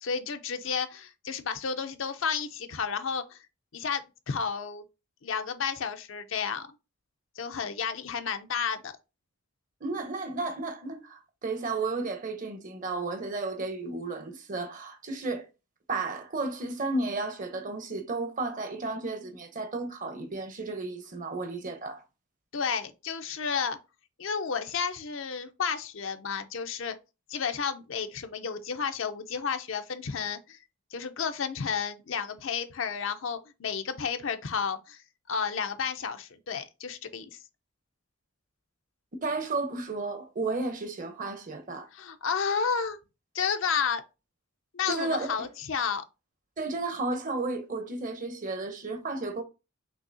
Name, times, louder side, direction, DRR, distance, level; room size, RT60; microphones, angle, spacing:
voice 1, 0.0-3.4 3.7-4.8 5.2-6.7 7.4-8.9 22.5-23.8 24.2-27.0 27.3-30.6 30.9-37.4 41.9-43.0 43.3-44.0 44.7-46.0, left 6 dB, 65° left, 0.6 m, -32 dB
voice 2, 9.8-15.5 15.9-22.0 39.2-41.9 44.9-45.5 46.6-49.4, right 3 dB, 40° right, 0.8 m, -33 dB
6.3 x 2.8 x 2.7 m
head